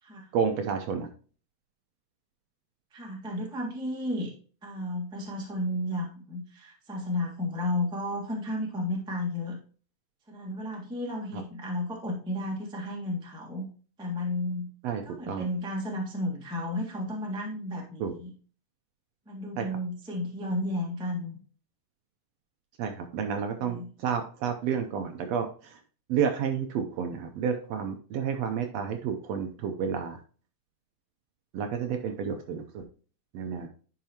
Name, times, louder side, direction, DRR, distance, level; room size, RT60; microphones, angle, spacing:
voice 1, 0.3-1.1 11.3-11.4 14.8-15.5 18.0-18.1 19.6-19.7 22.8-25.8 26.1-30.2 31.5-32.8 33.3-33.7, right 7 dB, 75° right, 5 dB, 1.6 m, -30 dB
voice 2, 2.9-4.3 4.6-9.6 10.3-13.7 14.0-14.7 15.0-18.3 19.3-21.4 23.6-23.9, left 1 dB, 5° right, -1 dB, 0.7 m, -33 dB
10.5 x 4.8 x 2.9 m, 0.40 s
omnidirectional pair, 3.4 m